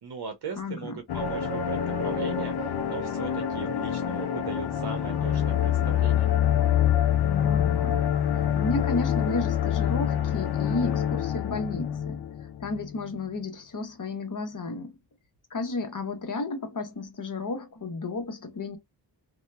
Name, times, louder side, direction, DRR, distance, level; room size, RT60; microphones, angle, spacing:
voice 1, 0.0-6.3, right 5 dB, 65° right, 0.7 m, -39 dB
voice 2, 0.6-1.0 7.2-8.1 8.4-12.2 12.6-14.9 15.5-18.8, left 3 dB, 45° left, 0.9 m, -33 dB
sound 1, 1.1-13.0, left 10 dB, 65° left, 0.5 m, -26 dB
sound 2, 1.2-7.6, right 7 dB, 10° right, 0.9 m, -39 dB
2.8 x 2.1 x 2.2 m
wide cardioid pair, 85°, 43 cm